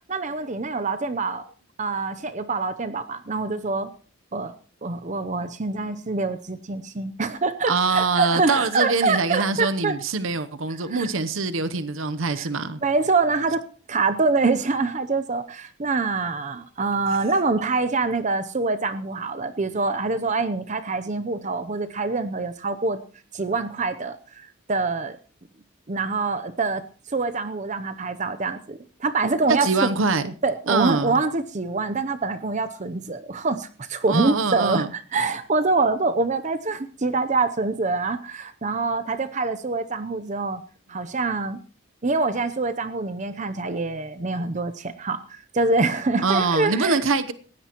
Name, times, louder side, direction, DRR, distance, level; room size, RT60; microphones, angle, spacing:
voice 1, 0.1-1.4 1.8-3.9 4.3-4.5 4.8-9.9 10.9-11.1 12.3-12.5 12.8-13.6 13.9-23.0 23.3-25.2 25.9-26.8 27.1-29.9 30.4-40.6 40.9-41.6 42.0-47.0, right 3 dB, 35° right, 11 dB, 0.7 m, -25 dB
voice 2, 7.7-12.8 29.6-30.3 30.7-31.2 34.1-34.9 46.2-47.3, right 4 dB, 70° right, 12 dB, 0.8 m, -24 dB
19.5 x 16.0 x 3.0 m, 0.41 s
head